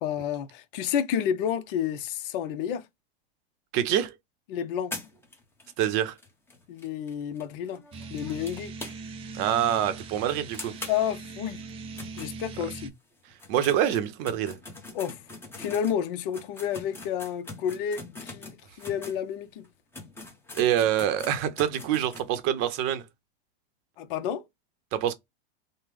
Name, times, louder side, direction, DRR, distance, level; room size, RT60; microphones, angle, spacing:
voice 1, 0.0-2.9 4.5-5.0 6.7-7.8 8.1-8.7 10.9-11.6 12.2-12.9 14.9-15.2 15.6-19.7 24.0-24.4, left 9 dB, 60° left, 0.7 m, -30 dB
voice 2, 3.7-4.1 5.8-6.2 9.3-10.7 13.5-14.6 20.5-23.0 24.9-25.1, right 10 dB, 45° right, 0.7 m, -25 dB
sound 1, 4.9-9.3 9.6-9.7 10.0-10.1 10.5-12.9 13.3-19.2 19.6-19.7 19.9-22.3, left 2 dB, 10° left, 0.8 m, -43 dB
sound 2, 7.9-12.9, right 4 dB, 20° right, 0.4 m, -41 dB
3.1 x 2.1 x 3.4 m
supercardioid pair, 135°, 30 cm